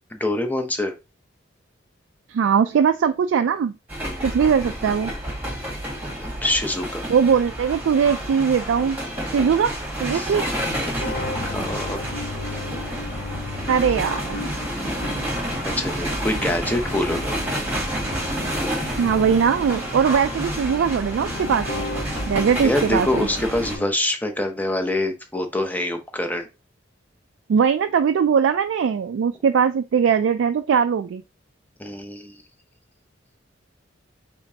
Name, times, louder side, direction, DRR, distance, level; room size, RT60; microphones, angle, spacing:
voice 1, 0.1-0.9 4.0-4.4 6.2-7.1 10.1-10.3 10.9-12.1 15.8-17.4 22.6-26.5 31.8-32.4, left 1 dB, 10° left, 0.7 m, -26 dB
voice 2, 2.3-3.7 4.2-5.1 7.1-9.0 9.3-9.7 10.0-10.4 13.7-14.4 19.0-21.8 22.3-23.3 27.5-31.2, right 7 dB, 75° right, 0.3 m, -20 dB
sound 1, 3.9-23.8, equal, 10° right, 1.6 m, -29 dB
sound 2, 10.6-23.9, left 2 dB, 70° left, 0.8 m, -35 dB
5.1 x 3.4 x 2.7 m
head